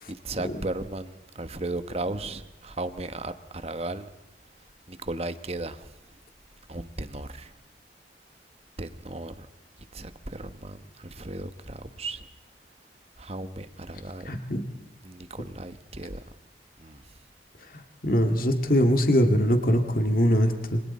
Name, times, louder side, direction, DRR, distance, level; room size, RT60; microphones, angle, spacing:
voice 1, 0.1-4.1 4.9-5.9 6.7-7.5 8.8-9.5 9.9-12.3 13.2-14.4 15.0-16.2 16.8-17.0, right 2 dB, 35° right, 1.2 m, -35 dB
voice 2, 14.3-14.6 18.0-20.8, equal, 50° left, 2.1 m, -22 dB
28.0 x 24.5 x 4.3 m
head